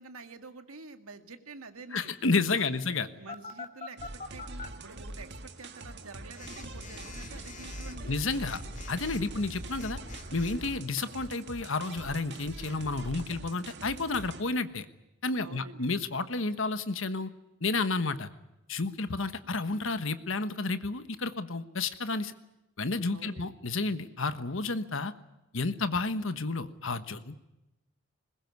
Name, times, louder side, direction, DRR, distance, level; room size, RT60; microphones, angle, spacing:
voice 1, 0.0-2.1 2.5-2.8 3.1-8.1 8.4-8.5 15.4-15.9 23.1-23.5, right 3 dB, 85° right, 8 dB, 2.1 m, -48 dB
voice 2, 1.9-3.1 8.0-8.6 8.9-10.0 10.3-14.9 15.2-17.3 17.6-18.3 18.7-22.3 22.8-25.1 25.5-27.4, left 3 dB, 65° left, 11 dB, 1.3 m, -31 dB
Telephone, 3.3-4.7 6.4-10.7, left 3 dB, 35° left, 2.2 m, -44 dB
sound 1, 4.0-14.4, right 2 dB, 55° right, 1.8 m, -43 dB
21.0 x 21.0 x 9.5 m, 0.95 s
head